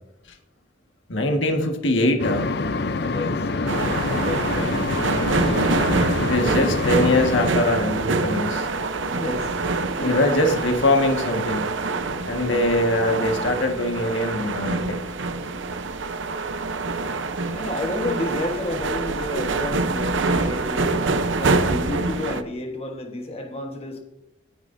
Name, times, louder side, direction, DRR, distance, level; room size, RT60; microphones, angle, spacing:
voice 1, 1.1-2.5 6.2-8.7 10.0-11.8 12.2-15.0, left 1 dB, 85° left, 4 dB, 1.7 m, -22 dB
sound 1, 2.2-7.5, left 3 dB, 55° left, 0.6 m, -26 dB
voice 2, 3.0-6.1 9.1-9.6 10.0-10.2 12.4-12.8 17.5-20.9 21.4-24.0, left 1 dB, 30° left, 3 dB, 1.4 m, -32 dB
sound 2, 3.7-22.4, right 3 dB, 85° right, 0.8 m, -25 dB
18.0 x 9.3 x 2.7 m, 0.86 s
head